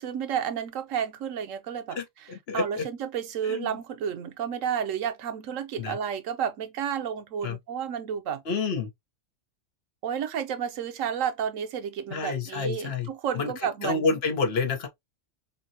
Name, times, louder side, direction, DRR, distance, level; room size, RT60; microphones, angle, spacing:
voice 1, 0.0-8.4 10.0-14.2, right 8 dB, 90° right, 1.1 m, -31 dB
voice 2, 1.9-2.9 3.5-3.8 5.8-6.0 7.4-7.6 8.5-8.9 12.1-13.1 13.3-13.5 13.8-14.9, left 4 dB, 55° left, 1.1 m, -29 dB
5.5 x 2.2 x 2.7 m
omnidirectional pair, 1.3 m